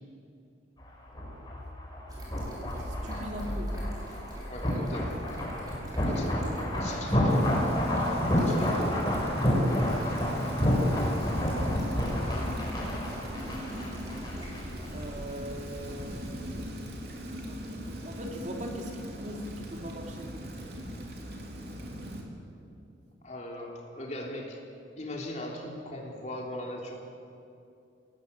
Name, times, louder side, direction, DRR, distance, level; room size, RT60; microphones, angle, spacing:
sound 1, 0.8-14.6 14.8-15.0, equal, 20° left, 6.0 m, -29 dB
sound 2, 2.1-16.9, equal, 20° right, 6.2 m, -42 dB
voice 1, 2.8-3.7 4.7-4.9 5.8-6.2 6.4-7.4 8.4-8.5 8.9-9.2 14.9-16.2 17.5-20.3, equal, 40° right, 1 dB, 3.0 m, -41 dB
voice 2, 4.5-5.2 6.0-7.7 8.4-9.1 23.2-24.6 25.0-27.0, left 1 dB, 35° left, 0 dB, 3.4 m, -39 dB
Rain, 7.3-22.2, equal, 55° right, 3.6 m, -40 dB
27.5 x 18.5 x 8.1 m, 2.6 s
head